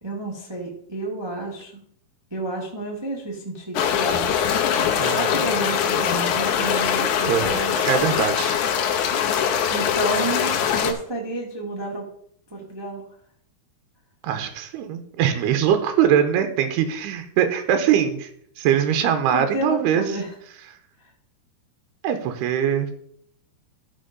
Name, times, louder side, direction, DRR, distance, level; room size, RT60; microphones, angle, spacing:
voice 1, 0.0-1.8 2.3-4.5 5.0-7.8 9.7-12.0 12.5-13.0 19.3-20.3, right 1 dB, 20° right, -2 dB, 0.7 m, -30 dB
sound 1, 3.7-10.9, left 8 dB, 75° left, 1.8 m, -22 dB
voice 2, 5.0-5.3 7.3-7.5 7.9-8.6 14.2-18.3 18.6-20.0 22.0-22.9, right 9 dB, 85° right, 7 dB, 3.0 m, -22 dB
13.5 x 4.5 x 5.2 m, 0.65 s
omnidirectional pair, 4.6 m